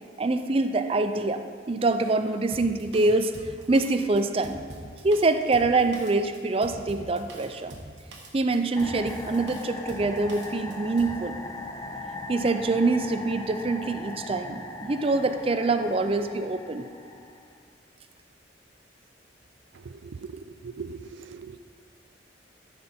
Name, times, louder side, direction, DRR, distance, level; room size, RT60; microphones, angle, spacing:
voice 1, 0.2-4.6 5.0-7.8 8.3-11.4 12.3-16.8, right 3 dB, 30° right, 8 dB, 0.4 m, -25 dB
Drum kit, 2.5-11.2, right 1 dB, 65° right, 1.4 m, -44 dB
sound 1, 8.8-17.6, left 2 dB, 20° left, 0.6 m, -39 dB
voice 2, 20.6-21.6, right 5 dB, 90° right, 12 dB, 0.4 m, -39 dB
13.0 x 6.0 x 4.3 m, 2.2 s
head